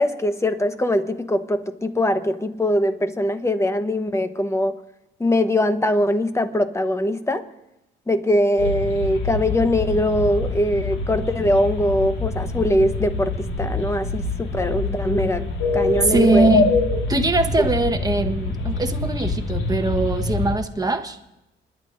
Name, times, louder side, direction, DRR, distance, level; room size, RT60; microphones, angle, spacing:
voice 1, 0.0-4.8 5.2-7.4 8.1-16.5, left 1 dB, 15° left, 10 dB, 1.0 m, -22 dB
sound 1, 8.6-20.5, left 3 dB, 80° left, 1.9 m, -25 dB
voice 2, 16.0-16.8 17.1-21.2, right 3 dB, 20° right, 6 dB, 1.2 m, -21 dB
28.5 x 11.0 x 2.6 m, 0.92 s
cardioid pair, 90°, 20 cm